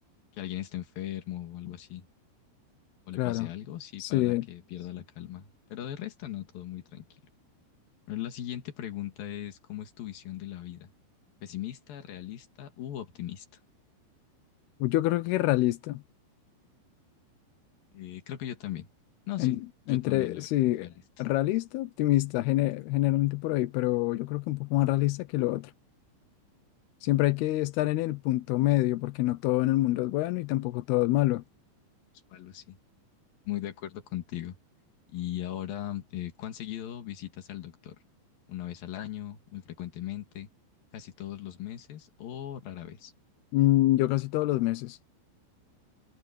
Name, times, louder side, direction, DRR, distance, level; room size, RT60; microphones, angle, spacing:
voice 1, 0.3-2.1 3.1-7.1 8.1-10.9 11.4-13.5 17.9-18.9 19.3-20.4 20.8-21.3 32.3-32.8 33.5-34.6 35.1-38.0 38.5-40.5 40.9-43.1, left 12 dB, 55° left, 3.4 m, -38 dB
voice 2, 3.2-3.5 4.0-4.5 14.8-16.0 19.4-19.6 19.9-20.9 21.2-25.7 27.0-31.4 43.5-45.0, left 17 dB, 75° left, 2.4 m, -26 dB
omnidirectional pair, 5.5 m